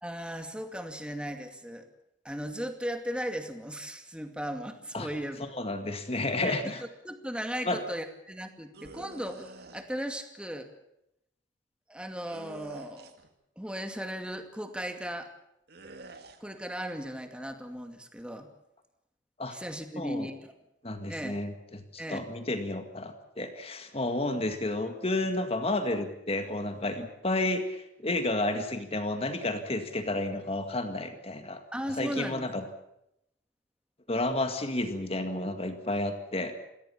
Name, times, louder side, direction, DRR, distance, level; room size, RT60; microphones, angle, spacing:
voice 1, 0.0-1.9 2.2-5.5 6.4-10.7 11.9-13.1 13.6-15.3 16.4-18.5 19.5-20.5 21.1-21.4 22.0-22.2 31.7-32.5, equal, 5° right, 6 dB, 2.3 m, -37 dB
voice 2, 5.4-6.8 7.7-7.8 19.4-19.6 20.0-20.3 20.8-31.6 32.0-32.6 34.1-36.5, left 2 dB, 30° left, 7 dB, 1.9 m, -31 dB
sound 1, 8.7-9.8 12.3-13.3 15.7-16.4, right 3 dB, 60° right, 2.2 m, -47 dB
27.0 x 18.0 x 7.2 m, 0.81 s
head